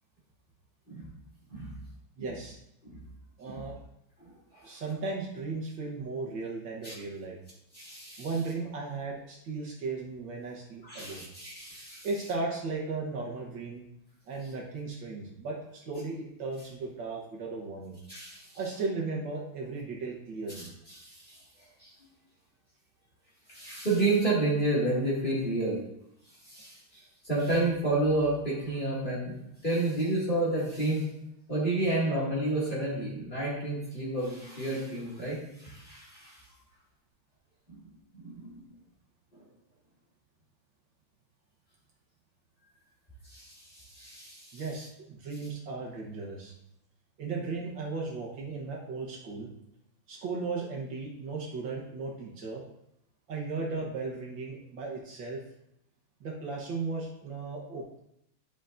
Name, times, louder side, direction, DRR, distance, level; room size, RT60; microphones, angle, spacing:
voice 1, 2.2-2.6 3.4-3.7 4.6-7.4 8.2-11.3 12.0-13.8 14.3-18.0 18.6-20.7 44.5-46.5 47.2-49.5 50.1-52.6 53.3-55.4 56.2-57.8, right 3 dB, 65° right, -3 dB, 1.8 m, -36 dB
voice 2, 4.2-4.6 6.8-6.9 7.7-8.3 10.8-12.1 18.1-18.5 20.9-21.4 21.8-21.9 23.5-25.8 26.5-29.4 29.6-31.0 31.5-36.4 37.7-37.8 38.2-38.6 43.3-44.6, right 2 dB, 25° left, -6 dB, 2.2 m, -30 dB
11.0 x 5.5 x 2.6 m, 0.81 s
omnidirectional pair, 2.4 m